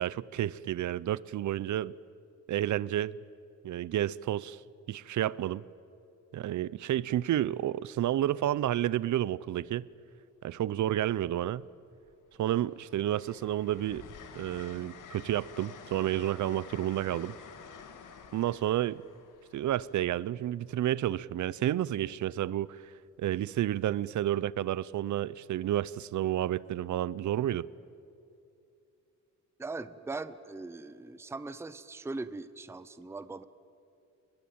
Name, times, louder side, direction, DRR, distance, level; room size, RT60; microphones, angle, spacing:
voice 1, 0.0-1.9 2.5-3.2 3.6-4.6 4.9-5.6 6.3-9.9 10.4-11.6 12.4-14.0 14.3-17.4 18.3-19.0 19.5-22.8 23.2-27.7, right 12 dB, 70° right, 0.6 m, -30 dB
Train, 9.6-9.7 10.9-11.6 12.1-20.8 22.4-22.7, left 6 dB, 75° left, 2.0 m, -50 dB
voice 2, 29.6-33.4, right 3 dB, 10° right, 0.6 m, -40 dB
30.0 x 20.5 x 8.7 m
wide cardioid pair, 165°, 31 cm